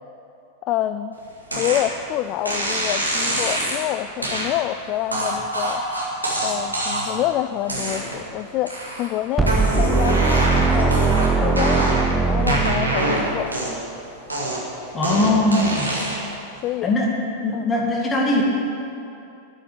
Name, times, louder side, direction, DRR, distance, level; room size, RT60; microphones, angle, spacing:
voice 1, 0.6-1.2 1.6-5.8 6.4-11.0 11.4-13.5 16.6-16.9 17.5-17.6, left 13 dB, 40° left, 11 dB, 0.3 m, -27 dB
sound 1, 1.5-1.9 2.4-3.8 4.2-4.5 5.1-7.2 7.6-8.3 8.7-9.1 9.4-12.1 12.5-13.9 14.3-16.3, right 1 dB, 85° right, 2.2 m, -25 dB
sound 2, 9.4-13.4, right 4 dB, 10° right, 0.7 m, -20 dB
voice 2, 14.9-15.9 16.8-17.1 17.4-18.4, left 2 dB, 20° left, -1 dB, 2.0 m, -20 dB
12.5 x 6.6 x 9.0 m, 2.7 s
figure-of-eight pair, 90°, 0 cm